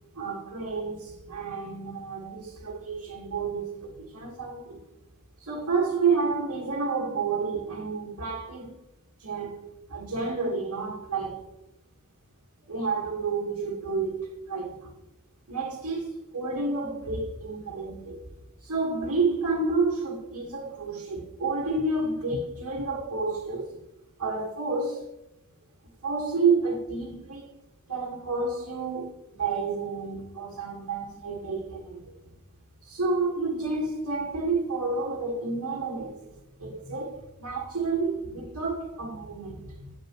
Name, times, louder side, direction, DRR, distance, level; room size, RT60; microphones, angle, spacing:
voice 1, 0.1-4.8 5.4-8.7 9.2-11.5 12.7-14.9 15.5-18.2 18.6-23.8 24.2-25.0 26.0-27.5 27.9-32.0 32.8-36.3 36.6-39.9, right 4 dB, 85° right, 1.6 m, -30 dB
11.5 x 8.5 x 3.0 m
head